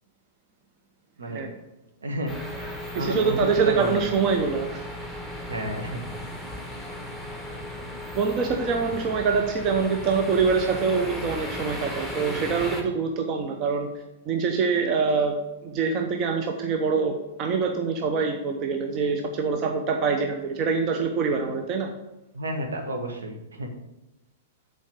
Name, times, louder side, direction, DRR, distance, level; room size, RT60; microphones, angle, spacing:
voice 1, 2.0-2.3 2.9-4.1 5.5-6.0 7.7-7.9 22.3-23.7, right 1 dB, 70° right, 3 dB, 1.5 m, -31 dB
sound 1, 2.3-12.8, left 1 dB, 5° right, 1.4 m, -36 dB
voice 2, 2.9-4.8 8.1-13.9 14.3-21.9, right 5 dB, 35° right, 4 dB, 0.8 m, -25 dB
7.3 x 4.7 x 6.4 m, 0.97 s
figure-of-eight pair, 105°, 0 cm